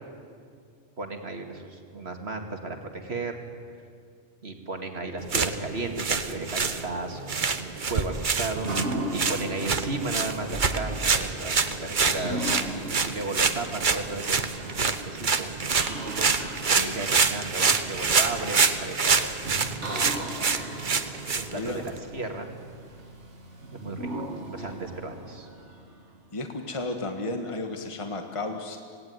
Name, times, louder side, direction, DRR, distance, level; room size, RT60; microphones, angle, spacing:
voice 1, 1.0-3.4 4.4-12.6 13.0-16.3 16.8-19.3 19.8-20.7 21.3-22.5 23.7-25.5, right 3 dB, 60° right, 4 dB, 2.5 m, -35 dB
sound 1, 5.2-22.0, right 5 dB, 45° right, 1.2 m, -27 dB
sound 2, 8.4-26.3, right 1 dB, 80° right, 2.6 m, -38 dB
voice 2, 16.6-17.0 21.5-21.9 24.6-24.7 26.3-28.8, left 2 dB, 25° left, 4 dB, 1.7 m, -33 dB
26.5 x 18.5 x 9.6 m, 2.2 s
omnidirectional pair, 1.2 m